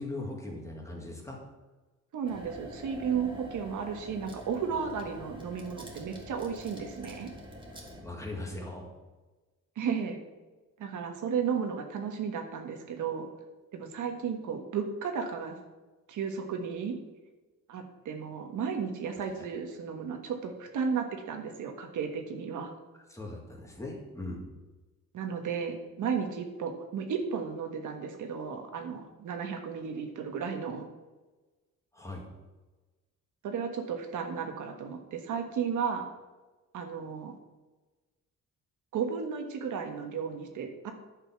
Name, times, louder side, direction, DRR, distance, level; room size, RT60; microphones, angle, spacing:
voice 1, 0.0-1.4 8.0-8.9 23.1-24.4 31.9-32.2, left 2 dB, 10° left, -1 dB, 2.2 m, -39 dB
voice 2, 2.1-7.3 9.7-10.2 10.8-13.3 13.7-15.6 16.1-17.0 17.7-22.7 25.1-30.8 33.4-36.1 36.7-37.4 38.9-40.9, right 6 dB, 70° right, 4 dB, 1.5 m, -34 dB
sound 1, 2.2-8.0, equal, 15° right, 2.0 m, -46 dB
10.5 x 6.8 x 6.0 m, 1.2 s
cardioid pair, 150°, 32 cm